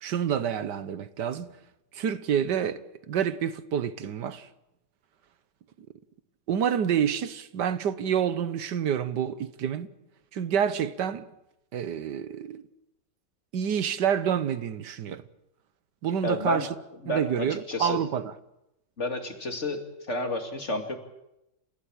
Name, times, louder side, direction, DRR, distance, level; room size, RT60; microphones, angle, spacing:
voice 1, 0.0-1.6 1.9-2.8 3.1-4.5 6.5-9.9 10.3-11.3 11.7-12.6 13.5-15.2 16.0-16.7 17.1-18.3, right 8 dB, 75° right, 1.7 m, -28 dB
voice 2, 16.2-16.7 17.0-18.0 19.0-19.8 20.1-21.0, left 2 dB, 40° left, 2.9 m, -30 dB
29.5 x 16.0 x 8.8 m
omnidirectional pair, 1.9 m